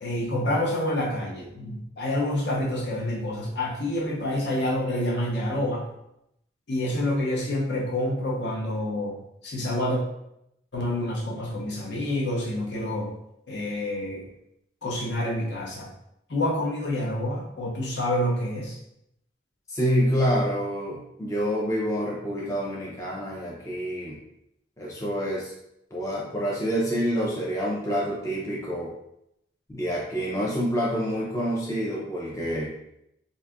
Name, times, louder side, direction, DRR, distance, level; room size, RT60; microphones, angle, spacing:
voice 1, 0.0-5.9 6.7-9.2 9.4-10.0 10.7-13.1 13.5-14.3 14.8-15.9 16.3-18.8, left 1 dB, 60° left, -3 dB, 0.7 m, -28 dB
voice 2, 19.7-24.2 24.8-25.5 25.9-28.9 29.7-32.7, equal, 15° left, -5 dB, 0.4 m, -27 dB
2.6 x 2.4 x 3.4 m, 0.81 s
head